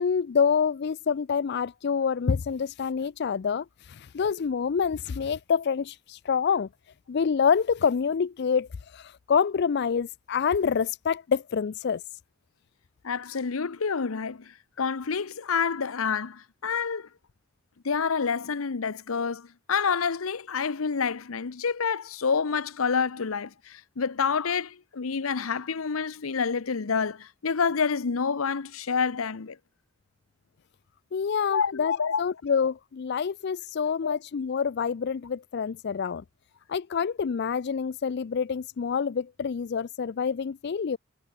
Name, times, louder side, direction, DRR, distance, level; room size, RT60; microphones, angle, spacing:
voice 1, 0.0-6.7 7.1-12.0 31.1-36.2 36.7-41.0, left 6 dB, 55° left, 0.4 m, -27 dB
voice 2, 13.0-17.1 17.8-29.6 31.5-32.2 34.0-34.2, left 5 dB, 80° left, 0.8 m, -28 dB
head